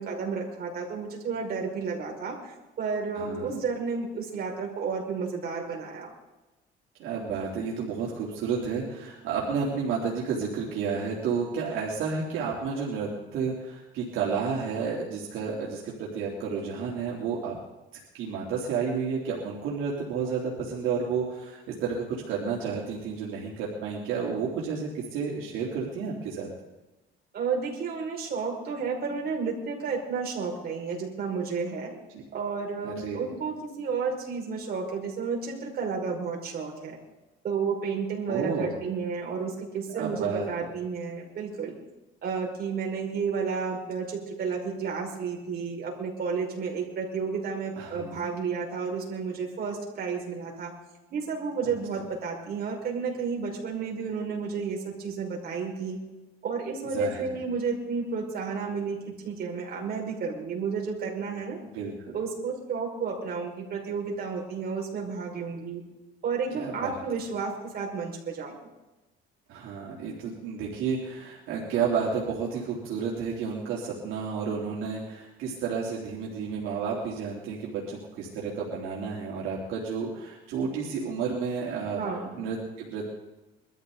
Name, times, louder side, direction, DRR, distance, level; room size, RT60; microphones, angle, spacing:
voice 1, 0.0-6.1 27.3-31.9 32.3-37.0 37.4-41.8 42.2-50.7 51.1-56.0 56.4-59.0 59.2-61.6 62.1-65.8 66.2-68.5 82.0-82.4, right 5 dB, 50° right, -1 dB, 5.4 m, -31 dB
voice 2, 3.1-3.5 7.0-17.6 18.1-26.5 32.1-32.2 32.8-33.2 38.3-38.8 39.9-40.5 47.8-48.2 56.9-57.2 61.7-62.1 66.5-66.9 69.5-82.0 82.3-83.1, right 5 dB, 75° right, -3 dB, 3.2 m, -31 dB
22.5 x 13.5 x 4.0 m, 1.0 s
cardioid pair, 115°, 21 cm